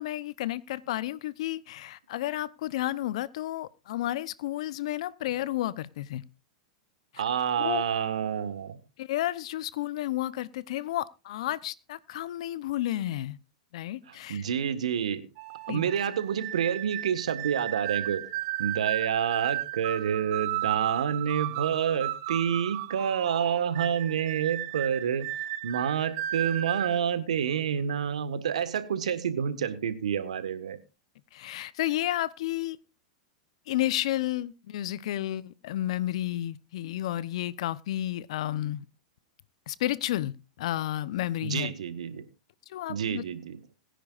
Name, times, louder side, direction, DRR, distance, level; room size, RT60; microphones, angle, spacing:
voice 1, 0.0-6.2 7.1-7.2 7.6-7.8 9.0-13.4 13.7-14.4 15.7-15.8 31.3-32.8 33.7-38.8 39.7-41.7 42.7-43.2, left 14 dB, 65° left, 0.8 m, -31 dB
voice 2, 7.2-8.8 14.1-15.2 15.7-18.3 18.6-25.3 25.6-30.8 41.4-42.3 42.9-43.6, right 8 dB, 80° right, 1.5 m, -28 dB
sound 1, 15.4-27.0, right 15 dB, 55° right, 1.2 m, -34 dB
21.5 x 10.0 x 2.5 m
hypercardioid pair, 110°, 4 cm